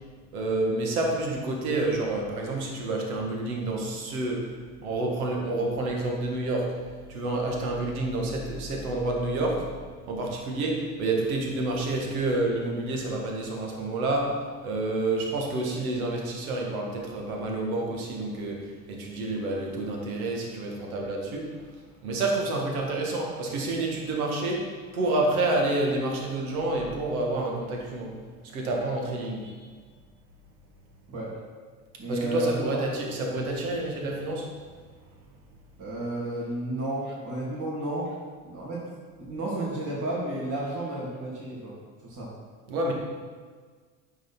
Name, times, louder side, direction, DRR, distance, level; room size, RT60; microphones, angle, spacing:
voice 1, 0.3-4.5 4.8-6.7 7.1-9.7 10.1-21.7 22.0-28.1 28.4-29.7 32.1-34.5 42.7-42.9, right 2 dB, 80° right, 0 dB, 1.7 m, -29 dB
voice 2, 32.0-32.8 35.8-38.1 38.4-38.9 39.2-41.7 42.0-42.3, right 1 dB, 45° right, -6 dB, 3.0 m, -32 dB
9.2 x 6.8 x 4.4 m, 1.5 s
hypercardioid pair, 75°, 43 cm